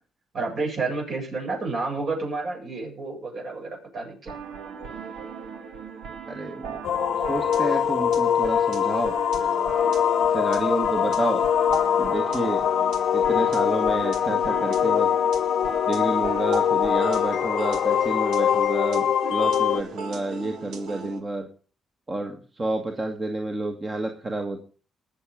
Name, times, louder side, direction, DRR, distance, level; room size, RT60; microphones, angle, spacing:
voice 1, 0.3-4.4, right 3 dB, 55° right, 0 dB, 7.9 m, -30 dB
sound 1, 4.3-21.2, right 5 dB, 80° right, 2.0 m, -37 dB
voice 2, 6.3-6.8 7.3-9.1 10.3-11.5 12.0-12.6 13.1-15.1 15.9-21.5 22.1-24.6, right 2 dB, 30° right, 3 dB, 1.8 m, -29 dB
sound 2, 6.8-19.8, left 9 dB, 65° left, 0.9 m, -23 dB
20.0 x 7.4 x 5.2 m, 0.39 s
cardioid pair, 95°, 0 cm